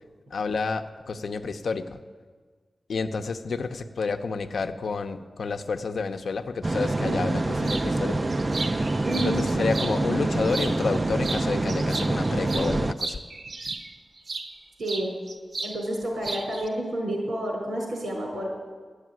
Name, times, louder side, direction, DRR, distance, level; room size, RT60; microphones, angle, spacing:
voice 1, 0.3-2.0 2.9-8.3 9.2-13.2, left 4 dB, 75° left, 8 dB, 0.7 m, -30 dB
sound 1, 6.6-12.9, right 2 dB, 25° right, 0.3 m, -26 dB
sound 2, 7.6-7.9 8.3-10.0 10.4-11.0 11.2-14.5 14.9-16.7, right 3 dB, 60° right, 1.0 m, -35 dB
voice 2, 9.0-9.4 14.8-15.1 15.6-18.5, right 1 dB, 85° right, -1 dB, 4.5 m, -29 dB
12.0 x 8.2 x 9.4 m, 1.5 s
wide cardioid pair, 150°, 0 cm